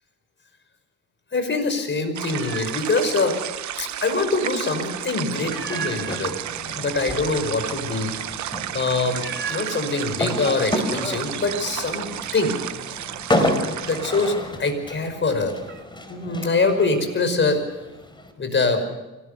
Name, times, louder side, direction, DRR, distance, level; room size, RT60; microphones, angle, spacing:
voice 1, 1.3-3.4 3.8-6.3 6.7-8.1 8.7-12.6 13.8-15.6 16.1-17.7 18.4-18.9, left 3 dB, 40° left, 7 dB, 5.6 m, -24 dB
sound 1, 2.1-14.3, right 12 dB, 70° right, 0.9 m, -32 dB
sound 2, 2.3-3.1 3.5-4.2 4.6-5.0 5.3-10.4 10.7-11.3 11.6-14.7 15.2-15.8, right 6 dB, 40° right, 2.8 m, -38 dB
sound 3, 5.4-18.3, left 1 dB, 15° left, 4.7 m, -31 dB
25.0 x 18.5 x 6.9 m, 1.1 s
cardioid pair, 90°, 30 cm